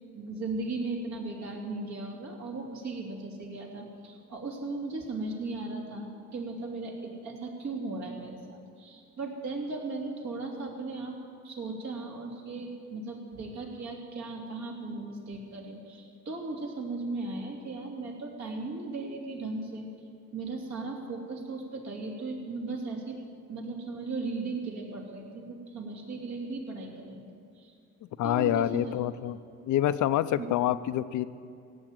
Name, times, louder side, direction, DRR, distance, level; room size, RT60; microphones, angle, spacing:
voice 1, 0.1-11.2 11.4-19.9 20.3-23.2 23.5-27.2 27.6-27.7 28.2-28.9 30.4-30.5, right 3 dB, 65° right, -1 dB, 3.0 m, -37 dB
voice 2, 28.2-29.4 29.7-31.2, left 12 dB, 75° left, 14 dB, 0.6 m, -27 dB
16.5 x 7.6 x 9.0 m, 2.3 s
cardioid pair, 90°, 30 cm